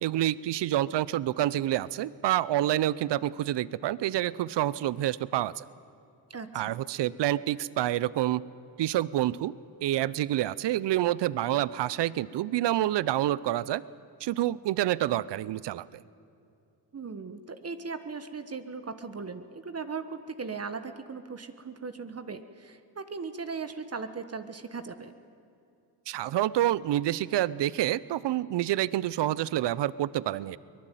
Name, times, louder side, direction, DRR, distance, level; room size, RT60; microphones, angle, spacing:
voice 1, 0.0-5.6 6.5-8.4 8.8-9.5 9.8-13.8 14.2-16.0 26.1-30.6, right 13 dB, 70° right, 20 dB, 0.7 m, -28 dB
voice 2, 6.3-6.8 16.9-25.1, right 4 dB, 35° right, 10 dB, 1.3 m, -38 dB
23.5 x 19.0 x 9.2 m, 2.6 s
cardioid pair, 80°, 44 cm